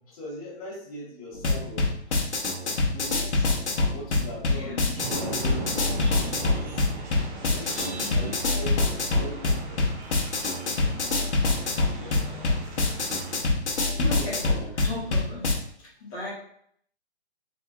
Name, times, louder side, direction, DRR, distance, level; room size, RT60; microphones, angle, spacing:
voice 1, 0.1-2.2 2.6-3.5 3.9-6.9 7.5-9.9 10.8-11.3 11.7-12.8 13.8-14.7, left 1 dB, 30° left, -5 dB, 1.4 m, -41 dB
sound 1, 1.3-15.5, left 3 dB, 80° left, 1.1 m, -26 dB
voice 2, 4.5-4.8 7.8-8.9 11.1-11.4 13.9-14.4 14.8-15.5 16.1-16.3, left 1 dB, 10° left, -11 dB, 0.5 m, -37 dB
sound 2, 5.0-13.4, right 2 dB, 45° right, 0.8 m, -38 dB
4.3 x 2.9 x 2.4 m, 0.65 s
hypercardioid pair, 160°, 34 cm